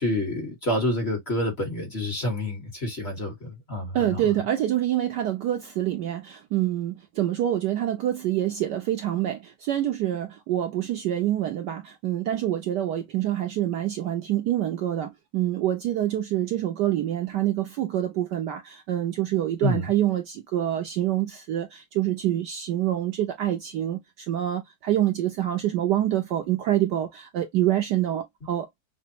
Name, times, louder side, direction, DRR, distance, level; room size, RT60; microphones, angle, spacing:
voice 1, 0.0-4.2 19.6-19.9, left 1 dB, 35° left, 1.4 m, -28 dB
voice 2, 3.9-28.7, right 12 dB, 70° right, 1.1 m, -26 dB
6.0 x 2.1 x 2.7 m
omnidirectional pair, 2.2 m